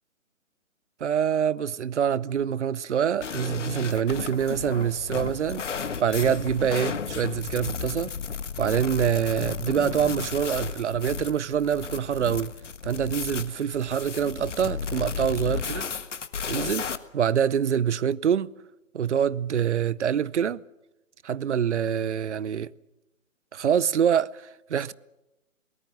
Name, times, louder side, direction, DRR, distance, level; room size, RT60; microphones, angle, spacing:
voice 1, 1.0-5.6 6.0-8.1 8.6-12.5 12.8-15.9 16.5-16.9 17.1-18.5 18.9-20.6 21.2-22.7 23.5-24.9, right 8 dB, 60° right, 0.8 m, -25 dB
sound 1, 3.2-17.0, left 6 dB, 60° left, 1.5 m, -33 dB
23.5 x 19.0 x 7.9 m
figure-of-eight pair, 140°, 40 cm